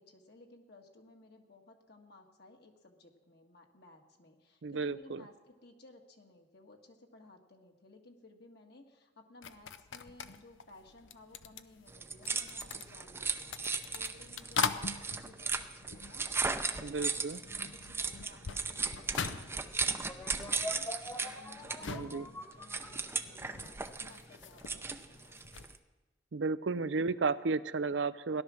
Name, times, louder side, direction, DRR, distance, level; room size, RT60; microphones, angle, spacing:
voice 1, 0.0-16.3 16.6-25.4, left 2 dB, 60° left, 2 dB, 1.8 m, -58 dB
voice 2, 4.6-5.2 16.8-17.4 21.9-22.3 26.3-28.4, right 4 dB, 75° right, 15 dB, 0.5 m, -33 dB
sound 1, 9.4-16.7 17.0-25.8, left 6 dB, 80° left, 0.7 m, -42 dB
sound 2, 11.9-25.8, right 4 dB, 15° right, 0.6 m, -37 dB
sound 3, 20.1-23.6, left 1 dB, 15° left, 1.3 m, -44 dB
17.0 x 11.5 x 6.4 m, 1.2 s
head